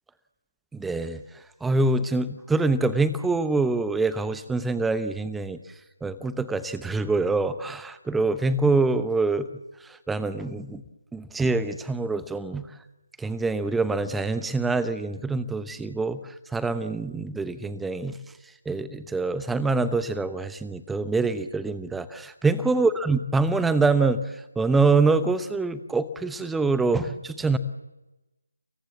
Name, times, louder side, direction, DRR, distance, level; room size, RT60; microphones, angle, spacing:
voice 1, 0.7-1.2 1.6-5.6 6.0-9.5 10.1-10.8 11.1-12.7 13.2-16.2 16.5-18.2 18.7-24.2 24.6-27.6, right 3 dB, 5° right, 14 dB, 0.9 m, -25 dB
30.0 x 18.5 x 7.3 m, 1.0 s
figure-of-eight pair, 155°, 0 cm